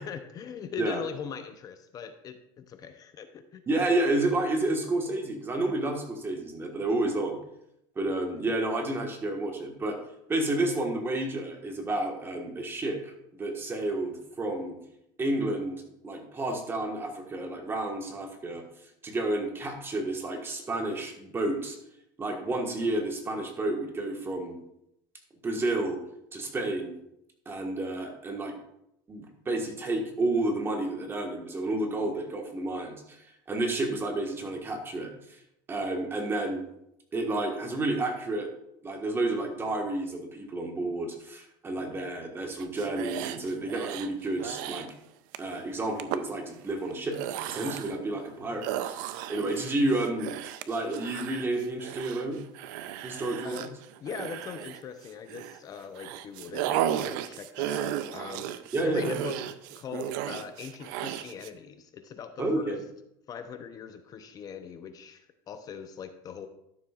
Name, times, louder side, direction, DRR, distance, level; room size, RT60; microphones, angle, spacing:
voice 1, 0.0-3.6 53.4-53.7 54.0-62.7 63.3-66.5, left 7 dB, 35° left, 8 dB, 0.7 m, -41 dB
voice 2, 3.7-7.4 7.9-10.0 10.3-13.1 13.4-14.8 15.2-18.6 19.0-21.8 22.2-24.6 25.4-26.0 26.3-26.9 27.4-28.6 29.1-33.2 33.5-35.1 35.7-36.6 37.1-38.5 38.8-44.9 45.4-47.2 47.4-49.0 49.3-50.4 50.7-52.4 53.0-53.7 58.7-59.3 62.4-62.8, right 2 dB, 20° right, 2 dB, 1.6 m, -30 dB
sound 1, 42.6-44.1 44.4-44.9 45.3-45.6 46.0-46.2 46.9-48.0 48.6-55.6 56.0-61.5, right 11 dB, 80° right, 0.5 m, -35 dB
12.5 x 7.1 x 2.5 m, 0.78 s
supercardioid pair, 125°, 10 cm